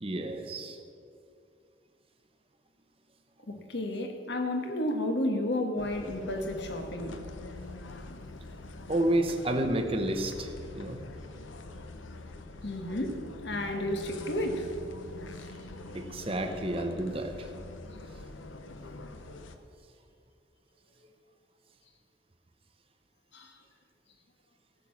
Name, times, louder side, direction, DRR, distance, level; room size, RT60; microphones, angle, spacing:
voice 1, 0.0-0.8 8.9-11.0 15.9-17.5, right 1 dB, 30° right, 5 dB, 0.9 m, -30 dB
voice 2, 3.5-7.2 7.9-8.0 12.6-14.6 23.3-23.5, left 1 dB, 60° left, 5 dB, 1.4 m, -32 dB
sound 1, 5.8-19.6, left 2 dB, 80° left, 0.8 m, -44 dB
14.5 x 6.5 x 7.3 m, 2.4 s
head